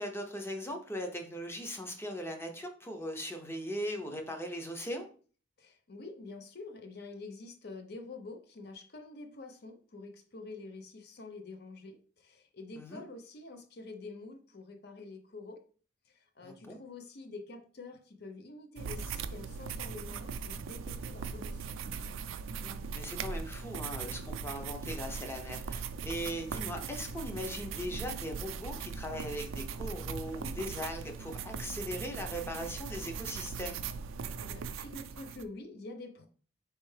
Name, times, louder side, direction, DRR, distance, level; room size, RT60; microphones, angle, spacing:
voice 1, 0.0-5.1 12.8-13.0 16.4-16.8 22.6-33.8, equal, 15° left, 0.6 m, -39 dB
voice 2, 5.6-15.6 16.1-21.8 34.4-36.3, left 3 dB, 55° left, 0.6 m, -47 dB
sound 1, 18.8-35.4, right 5 dB, 85° right, 0.4 m, -39 dB
4.4 x 3.3 x 3.2 m
head